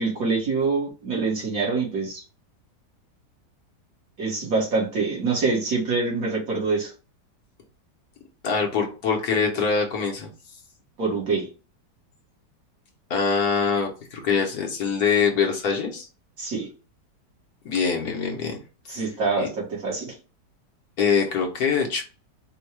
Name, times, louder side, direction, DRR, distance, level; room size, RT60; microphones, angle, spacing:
voice 1, 0.0-2.2 4.2-6.9 11.0-11.5 16.4-16.7 18.9-20.1, right 4 dB, 55° right, -2 dB, 1.8 m, -25 dB
voice 2, 8.4-10.3 13.1-16.1 17.6-18.6 18.9-19.0 19.4-19.5 21.0-22.0, left 6 dB, 65° left, 1 dB, 1.3 m, -24 dB
4.4 x 2.3 x 4.5 m, 0.35 s
omnidirectional pair, 1.9 m